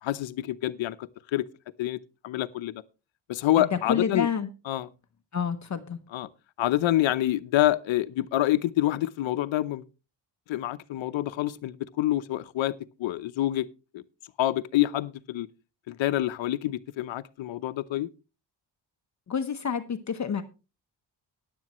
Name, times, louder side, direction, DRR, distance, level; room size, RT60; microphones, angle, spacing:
voice 1, 0.0-1.5 1.8-2.8 3.3-4.3 4.7-4.9 6.1-6.3 6.6-9.8 10.5-12.7 13.0-13.7 13.9-14.0 14.4-15.5 15.9-18.1, left 14 dB, 85° left, 0.9 m, -27 dB
voice 2, 3.6-4.5 5.3-6.0 19.3-20.4, left 6 dB, 40° left, 1.0 m, -29 dB
15.0 x 10.5 x 3.1 m
cardioid pair, 135°, 45 cm